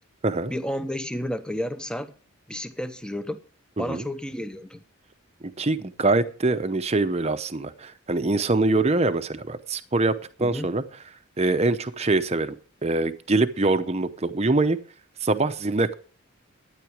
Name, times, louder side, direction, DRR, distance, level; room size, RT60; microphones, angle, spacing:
voice 1, 0.5-2.1 2.5-3.4 3.8-4.8 10.4-10.7, equal, 5° left, 10 dB, 0.8 m, -31 dB
voice 2, 5.4-10.8 11.4-14.8 15.2-15.9, right 2 dB, 30° right, 10 dB, 0.7 m, -24 dB
12.5 x 9.7 x 5.0 m, 0.40 s
head